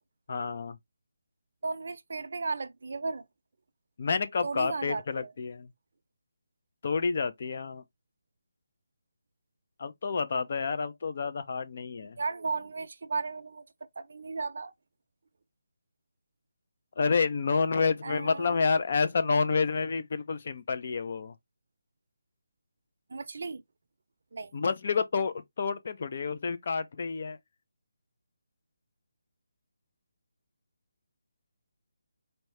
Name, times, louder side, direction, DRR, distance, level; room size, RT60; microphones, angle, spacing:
voice 1, 0.3-0.8 4.0-5.7 6.8-7.8 9.8-12.2 17.0-21.3 24.5-27.4, left 5 dB, 45° left, 0.6 m, -29 dB
voice 2, 1.6-3.2 4.4-5.3 12.2-13.6 14.0-14.7 18.0-18.6 23.1-23.6 24.3-24.5, right 4 dB, 60° right, 0.6 m, -35 dB
4.5 x 2.7 x 3.2 m
hypercardioid pair, 170°, 0 cm